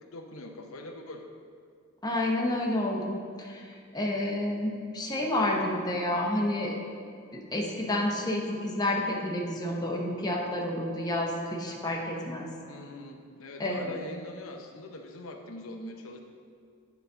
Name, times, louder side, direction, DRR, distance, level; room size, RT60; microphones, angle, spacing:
voice 1, 0.1-1.2 12.7-16.2, left 2 dB, 85° left, 3 dB, 0.7 m, -42 dB
voice 2, 2.0-3.7 3.9-6.8 7.3-12.5 13.6-14.0, left 1 dB, 20° left, -1 dB, 0.9 m, -30 dB
9.2 x 4.0 x 5.5 m, 2.4 s
head